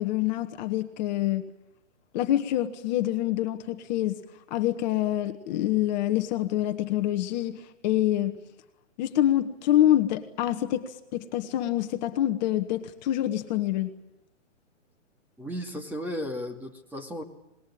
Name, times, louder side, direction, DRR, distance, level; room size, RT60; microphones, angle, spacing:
voice 1, 0.0-1.4 2.1-4.2 4.5-8.4 9.0-13.9, left 13 dB, 35° left, 6 dB, 1.6 m, -26 dB
voice 2, 15.4-17.2, equal, 5° right, 4 dB, 2.4 m, -34 dB
26.5 x 20.5 x 8.8 m, 0.94 s
hypercardioid pair, 140°, 37 cm